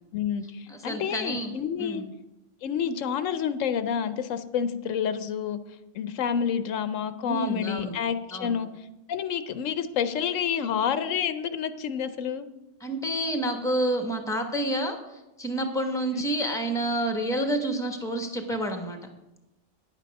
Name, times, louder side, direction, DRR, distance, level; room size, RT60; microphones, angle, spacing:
voice 1, 0.1-2.0 2.6-5.6 5.9-8.7 9.1-12.5, left 8 dB, 90° left, 12 dB, 1.0 m, -29 dB
voice 2, 0.7-1.5 1.8-2.0 7.3-7.9 8.3-8.6 12.8-19.0, right 1 dB, 5° left, 4 dB, 1.1 m, -29 dB
10.0 x 8.3 x 5.3 m, 0.97 s
omnidirectional pair, 1.3 m